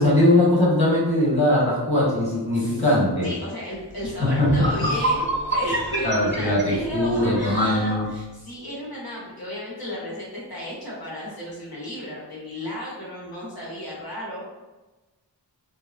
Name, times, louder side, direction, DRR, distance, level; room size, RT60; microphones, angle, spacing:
voice 1, 0.0-3.3 4.4-4.7 6.0-8.0, left 1 dB, 15° left, -6 dB, 1.3 m, -20 dB
voice 2, 2.5-2.9 3.2-14.5, left 1 dB, 55° left, -6 dB, 1.2 m, -33 dB
sound 1, 4.0-4.1 4.5-7.6, right 2 dB, 25° right, 0.6 m, -27 dB
Bowed string instrument, 4.5-8.2, right 2 dB, 90° left, 0.7 m, -36 dB
3.3 x 2.1 x 2.6 m, 1.1 s
wide cardioid pair, 50°, 44 cm